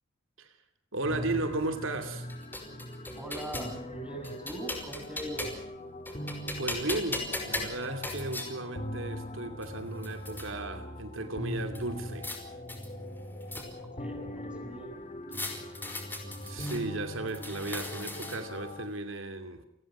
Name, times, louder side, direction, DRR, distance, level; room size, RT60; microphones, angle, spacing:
voice 1, 0.9-2.3 6.6-12.3 15.3-15.7 16.4-19.6, right 2 dB, 75° right, 2.7 m, -35 dB
sound 1, 1.0-18.9, equal, 35° left, 3.7 m, -42 dB
sound 2, 2.0-3.7 4.2-5.7 6.1-8.5 9.3-9.4 9.6-10.5 11.7-12.4 12.7-14.0 15.3-16.8 17.3-18.6, left 2 dB, 10° left, 5.3 m, -38 dB
voice 2, 3.2-5.5 13.8-15.0, right 1 dB, 5° right, 7.1 m, -40 dB
28.5 x 20.5 x 6.2 m
head